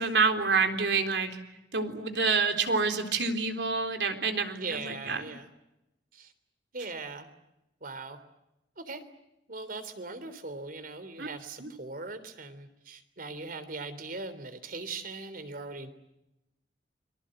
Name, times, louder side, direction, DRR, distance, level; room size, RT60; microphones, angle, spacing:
voice 1, 0.0-1.4 1.7-5.2 11.2-11.3 11.6-11.7, right 4 dB, 70° right, 6 dB, 3.8 m, -27 dB
voice 2, 4.5-5.5 6.1-6.3 6.7-7.3 7.8-8.2 8.8-9.0 9.5-15.9, right 3 dB, 55° right, 12 dB, 3.4 m, -40 dB
29.5 x 24.5 x 7.9 m, 0.90 s
head